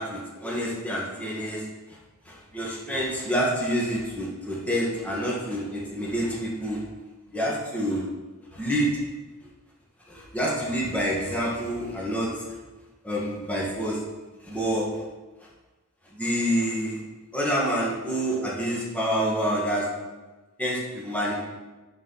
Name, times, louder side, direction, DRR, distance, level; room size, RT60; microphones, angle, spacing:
voice 1, 0.0-1.6 2.2-6.8 7.3-8.0 8.5-8.9 10.1-12.6 13.0-14.0 14.4-14.9 16.1-17.0 17.3-19.9 20.6-21.5, equal, 5° left, -5 dB, 1.7 m, -27 dB
10.5 x 4.3 x 4.0 m, 1.2 s
head